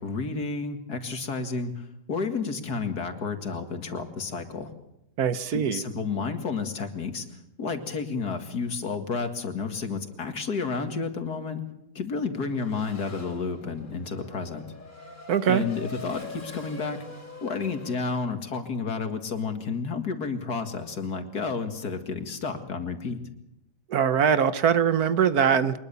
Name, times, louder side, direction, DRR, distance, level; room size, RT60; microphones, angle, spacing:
voice 1, 0.0-4.7 5.5-7.3 7.6-11.6 12.0-14.6 15.5-17.0 17.4-23.2, left 4 dB, 70° left, 7 dB, 2.6 m, -31 dB
voice 2, 5.2-5.8 15.3-15.6 23.9-25.8, right 7 dB, 70° right, 13 dB, 1.5 m, -22 dB
Race car auto racing / Accelerating revving vroom, 12.4-18.0, left 3 dB, 30° left, 3.3 m, -44 dB
23.5 x 21.0 x 7.0 m, 0.84 s
omnidirectional pair, 1.7 m